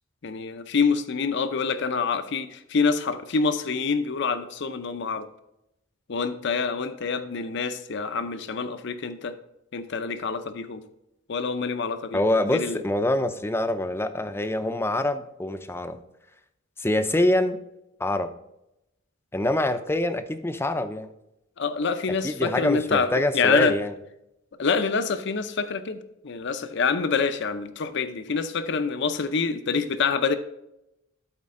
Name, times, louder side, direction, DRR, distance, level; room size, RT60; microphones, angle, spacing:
voice 1, 0.2-5.3 6.1-9.3 9.7-10.8 11.3-12.2 12.5-12.8 21.6-23.1 23.3-23.7 24.6-30.4, left 5 dB, 60° left, 10 dB, 0.6 m, -26 dB
voice 2, 12.1-16.0 16.8-17.6 18.0-18.3 19.3-21.1 22.2-23.9, left 1 dB, 10° left, 9 dB, 0.5 m, -25 dB
12.5 x 4.3 x 3.7 m, 0.86 s
head